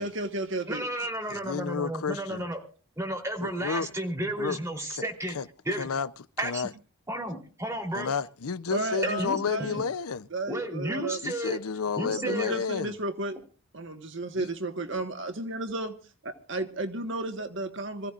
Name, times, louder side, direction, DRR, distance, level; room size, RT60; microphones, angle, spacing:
voice 1, 0.0-0.8 8.7-9.8 10.3-11.2 11.9-13.4 13.7-15.9 16.2-18.1, right 2 dB, 55° right, 1.5 m, -33 dB
voice 2, 0.7-2.6 3.0-5.3 5.7-5.9 6.4-6.7 7.1-8.1 9.0-9.4 10.5-11.6 12.0-12.6, right 1 dB, 15° right, 3.4 m, -32 dB
voice 3, 1.3-2.4 3.4-3.9 4.4-4.6 4.9-5.0 5.3-5.4 5.8-6.1 6.4-6.7 8.0-10.3 11.2-12.9 14.4-14.5, left 6 dB, 85° left, 0.6 m, -31 dB
26.0 x 15.5 x 2.5 m
head